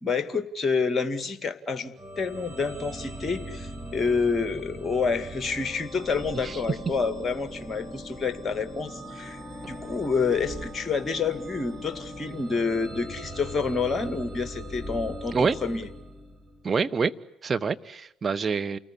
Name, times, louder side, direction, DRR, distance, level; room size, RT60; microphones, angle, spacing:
voice 1, 0.0-9.4 9.7-15.9, left 4 dB, 25° left, 2.1 m, -28 dB
sound 1, 2.0-16.7, equal, 10° right, 4.6 m, -40 dB
voice 2, 15.3-15.8 16.6-17.1 17.4-18.8, right 5 dB, 30° right, 1.2 m, -26 dB
29.0 x 20.0 x 9.9 m
figure-of-eight pair, 50°, 0 cm